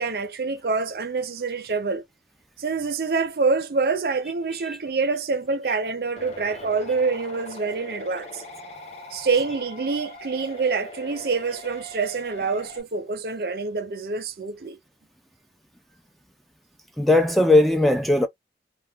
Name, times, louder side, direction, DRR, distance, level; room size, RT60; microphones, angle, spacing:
voice 1, 0.0-2.0 2.6-8.4 9.1-14.8, right 4 dB, 60° right, 0.5 m, -26 dB
sound 1, 6.2-12.8, left 2 dB, 35° left, 0.8 m, -41 dB
voice 2, 17.0-18.3, left 2 dB, ahead, 0.3 m, -19 dB
2.3 x 2.1 x 3.2 m
head